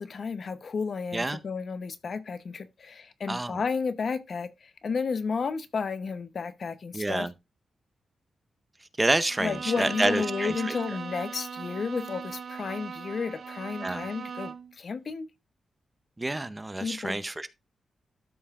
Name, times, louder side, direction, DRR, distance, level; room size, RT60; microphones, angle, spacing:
voice 1, 0.0-7.3 9.4-15.3 16.8-17.2, left 5 dB, 50° left, 0.8 m, -32 dB
voice 2, 3.3-3.6 6.9-7.3 9.0-10.7 13.8-14.0 16.2-17.5, right 2 dB, 15° right, 0.6 m, -28 dB
Bowed string instrument, 9.3-14.7, right 6 dB, 55° right, 0.8 m, -38 dB
13.0 x 5.5 x 2.4 m
wide cardioid pair, 125°, 0 cm